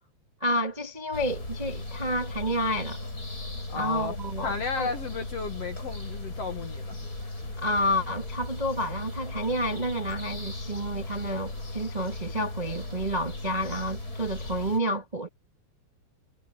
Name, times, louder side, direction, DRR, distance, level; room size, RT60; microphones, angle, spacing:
voice 1, 0.4-3.0 3.7-4.9 7.6-15.3, equal, 75° right, 0.3 m, -30 dB
sound 1, 1.1-14.8, left 2 dB, 20° left, 6.4 m, -37 dB
voice 2, 3.7-4.1 4.4-7.0, left 4 dB, 60° left, 1.8 m, -33 dB
omnidirectional pair, 4.8 m